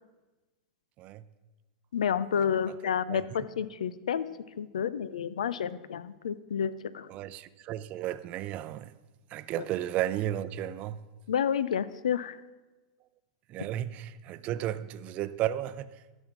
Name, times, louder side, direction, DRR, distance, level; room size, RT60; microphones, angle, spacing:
voice 1, 1.9-4.3 4.6-7.1 11.3-12.4, left 8 dB, 85° left, 0.5 m, -30 dB
voice 2, 7.1-8.9 9.3-11.0 13.5-16.0, right 12 dB, 40° right, 0.6 m, -33 dB
12.5 x 6.3 x 7.3 m
hypercardioid pair, 125°, 4 cm